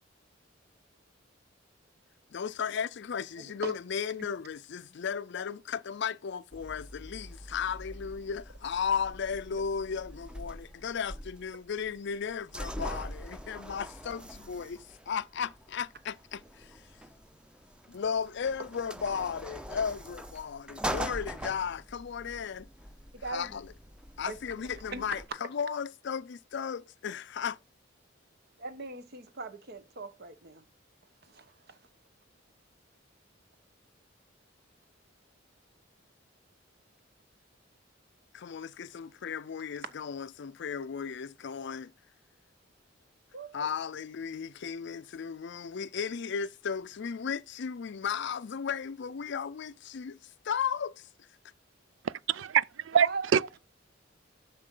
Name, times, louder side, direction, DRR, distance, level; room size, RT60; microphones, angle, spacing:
voice 1, 2.3-16.9 17.9-22.7 23.2-23.7 24.2-27.6 38.3-41.9 43.5-51.1, left 6 dB, 65° left, 0.4 m, -35 dB
voice 2, 3.4-3.7 23.2-23.5 24.3-24.4 24.9-25.0 28.6-30.6 31.3-31.8 43.3-43.7 52.9-53.3, right 3 dB, 60° right, 1.2 m, -40 dB
sound 1, 6.5-25.3, equal, 5° right, 0.7 m, -43 dB
voice 3, 52.0-53.6, right 8 dB, 80° right, 0.4 m, -26 dB
9.8 x 6.8 x 3.8 m
head